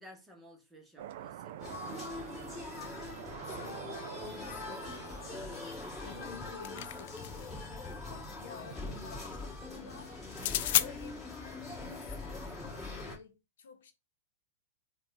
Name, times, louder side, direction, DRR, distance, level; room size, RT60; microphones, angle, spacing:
voice 1, 0.0-2.1, equal, 10° right, 1.0 m, -55 dB
sound 1, 1.0-7.0, right 12 dB, 60° right, 0.3 m, -47 dB
sound 2, 1.6-13.2, left 3 dB, 10° left, 2.0 m, -42 dB
voice 2, 3.0-5.7 6.0-7.7 8.1-10.2 10.6-12.4 12.9-13.9, left 6 dB, 75° left, 0.8 m, -52 dB
sound 3, 6.3-7.6 10.3-10.9, left 13 dB, 60° left, 0.3 m, -32 dB
3.4 x 2.3 x 4.0 m
hypercardioid pair, 130°, 0 cm